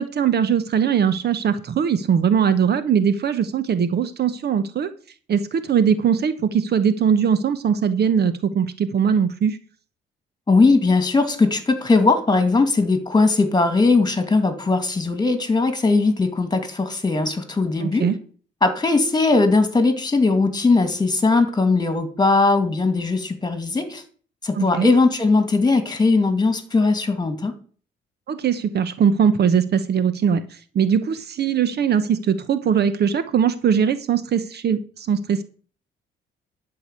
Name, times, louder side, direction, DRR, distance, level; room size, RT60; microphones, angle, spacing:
voice 1, 0.0-4.9 5.3-9.6 17.8-18.2 24.5-24.9 28.3-30.4 30.7-35.4, right 7 dB, 55° right, 13 dB, 1.0 m, -20 dB
voice 2, 10.5-18.1 18.6-24.0 24.4-27.5, left 3 dB, 20° left, 9 dB, 2.4 m, -19 dB
11.5 x 5.0 x 8.2 m, 0.43 s
cardioid pair, 90°, 20 cm